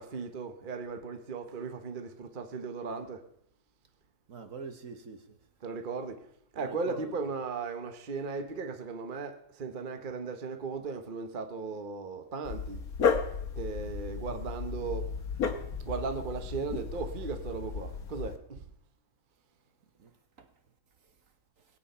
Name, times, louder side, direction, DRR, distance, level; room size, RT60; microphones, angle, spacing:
voice 1, 0.0-3.2 5.6-6.3 6.5-12.9 13.6-15.1 15.8-18.6, right 4 dB, 35° right, 1.0 m, -37 dB
voice 2, 4.3-5.4 6.6-7.2 20.0-20.1 20.4-20.5 21.6-21.7, right 5 dB, 55° right, 1.4 m, -44 dB
Dog, 12.4-18.4, left 5 dB, 65° left, 1.7 m, -33 dB
20.0 x 8.5 x 5.6 m
omnidirectional pair, 1.8 m